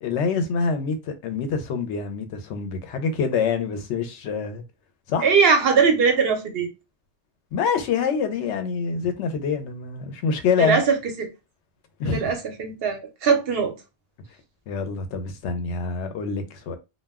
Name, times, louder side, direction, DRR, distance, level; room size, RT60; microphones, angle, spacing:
voice 1, 0.0-4.6 5.1-5.3 7.5-10.8 12.0-12.4 14.7-16.8, left 5 dB, 85° left, 0.9 m, -26 dB
voice 2, 5.2-6.7 10.6-11.3 12.0-13.7, right 5 dB, 65° right, 0.8 m, -21 dB
2.2 x 2.1 x 3.4 m
omnidirectional pair, 1.1 m